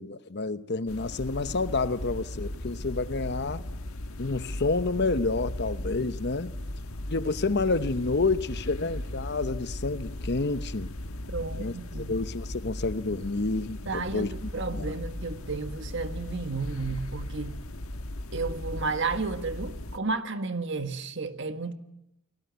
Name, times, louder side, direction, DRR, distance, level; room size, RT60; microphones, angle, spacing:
voice 1, 0.0-3.7 4.2-6.5 7.1-10.9 11.6-14.3 14.7-14.9, left 3 dB, 50° left, 0.9 m, -29 dB
sound 1, 0.9-20.0, left 1 dB, 80° left, 1.5 m, -37 dB
voice 2, 11.3-12.1 13.8-17.6 18.3-21.7, right 3 dB, 55° right, 1.7 m, -32 dB
30.0 x 19.5 x 9.4 m
head